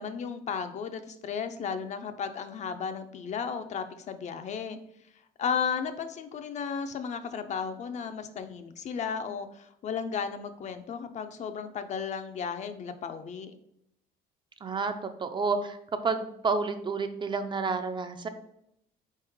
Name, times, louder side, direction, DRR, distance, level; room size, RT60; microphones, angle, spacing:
voice 1, 0.0-4.8 5.4-13.5, left 6 dB, 45° left, 9 dB, 0.4 m, -34 dB
voice 2, 14.6-15.8 16.0-18.3, right 4 dB, 30° right, 8 dB, 0.4 m, -30 dB
4.1 x 3.2 x 3.5 m, 0.77 s
cardioid pair, 110°, 17 cm